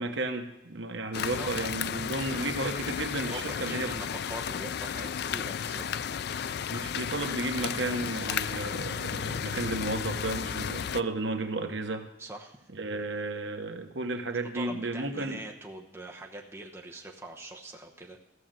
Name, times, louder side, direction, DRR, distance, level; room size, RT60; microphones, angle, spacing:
voice 1, 0.0-3.9 6.7-12.0 12.7-15.4, right 2 dB, 70° right, 6 dB, 1.1 m, -33 dB
sound 1, 1.1-11.0, left 8 dB, 55° left, 0.3 m, -33 dB
voice 2, 1.1-1.5 2.2-2.3 3.2-5.9 6.1-6.7 8.3-8.4 12.2-12.6 14.5-18.2, right 1 dB, 15° right, 1 dB, 0.9 m, -43 dB
14.5 x 6.5 x 7.4 m, 0.91 s
head